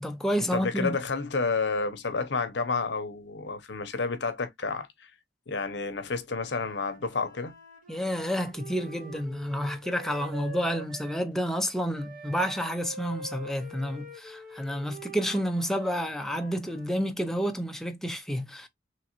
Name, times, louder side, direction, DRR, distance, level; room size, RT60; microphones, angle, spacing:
voice 1, 0.0-1.0 7.9-18.7, equal, ahead, 0.5 m, -30 dB
voice 2, 0.5-5.1 5.5-7.6, left 4 dB, 70° left, 0.7 m, -30 dB
Wind instrument woodwind instrument, 6.2-11.3 11.9-16.9, right 3 dB, 45° right, 1.9 m, -45 dB
3.7 x 3.0 x 2.9 m
head